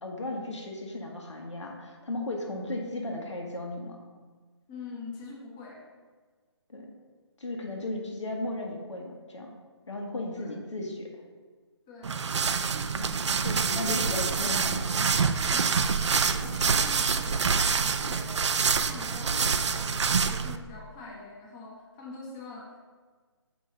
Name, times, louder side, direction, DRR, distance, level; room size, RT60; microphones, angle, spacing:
voice 1, 0.0-4.0 6.7-6.9 7.4-9.5 9.9-11.1 12.9-15.0, left 2 dB, 90° left, 0 dB, 1.4 m, -35 dB
voice 2, 4.7-5.9 10.4-10.5 11.9-12.2 13.7-14.8 15.5-16.0 16.2-22.8, left 3 dB, 20° left, -3 dB, 0.9 m, -44 dB
sound 1, 12.0-20.6, right 5 dB, 80° right, 0.4 m, -26 dB
6.2 x 4.9 x 3.8 m, 1.5 s
hypercardioid pair, 160°, 15 cm